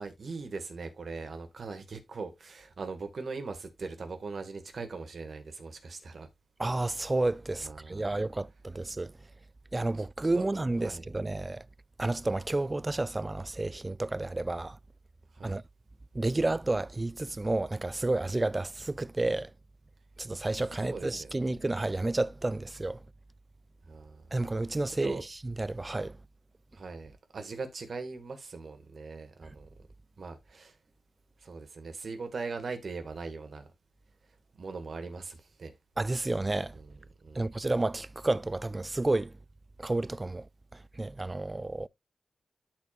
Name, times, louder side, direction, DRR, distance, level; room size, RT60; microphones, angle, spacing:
voice 1, 0.0-6.3 7.6-8.1 10.3-10.4 10.8-11.1 15.3-15.6 20.8-21.4 23.8-24.3 24.9-25.2 26.7-29.7 30.2-30.8 31.4-33.7 34.5-35.8 36.7-37.6, right 4 dB, 70° right, 1.7 m, -40 dB
voice 2, 6.6-9.1 9.7-11.6 12.0-14.8 15.4-15.6 16.1-19.5 20.2-23.0 24.3-25.2 25.6-26.2 36.0-36.7 37.4-39.3 39.8-40.5 41.0-41.9, right 2 dB, 25° right, 0.3 m, -30 dB
13.5 x 4.6 x 2.4 m
cardioid pair, 70°, 0 cm